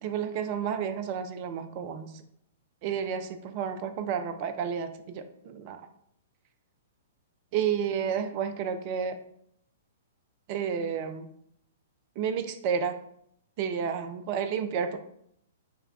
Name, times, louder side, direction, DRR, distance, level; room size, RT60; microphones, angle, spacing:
voice 1, 0.0-2.1 2.8-5.8 7.5-9.2 10.5-11.3 12.2-13.0 13.6-15.0, right 7 dB, 40° right, 10 dB, 0.4 m, -31 dB
5.3 x 2.2 x 3.5 m, 0.70 s
figure-of-eight pair, 110°, 0 cm